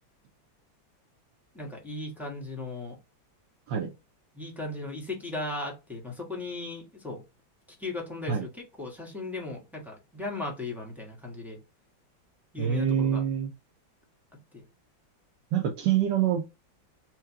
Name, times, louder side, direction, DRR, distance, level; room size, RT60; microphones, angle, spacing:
voice 1, 1.5-3.0 4.3-7.2 7.8-11.6 12.5-13.2 14.5-14.6, left 2 dB, ahead, 0.9 m, -37 dB
voice 2, 12.6-13.5 15.5-16.4, right 8 dB, 70° right, 1.2 m, -25 dB
4.5 x 2.3 x 4.5 m
omnidirectional pair, 2.1 m